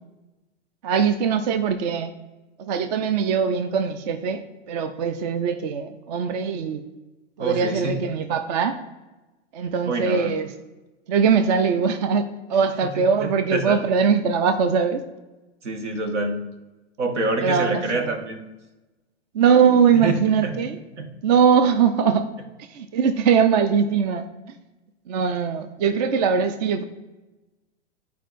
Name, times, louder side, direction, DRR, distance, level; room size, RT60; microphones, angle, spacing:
voice 1, 0.8-2.1 2.6-4.4 4.7-6.9 7.4-8.8 9.5-10.5 11.1-15.0 17.4-18.1 19.3-20.8 21.2-22.3 22.6-24.6 25.1-26.8, right 6 dB, 40° right, 10 dB, 0.4 m, -21 dB
voice 2, 7.4-8.0 9.9-10.3 12.9-13.8 15.6-16.4 17.0-18.4 19.9-20.5 21.0-21.1, right 2 dB, 80° right, 5 dB, 1.3 m, -26 dB
12.0 x 4.6 x 2.5 m, 1.1 s
hypercardioid pair, 140°, 35 cm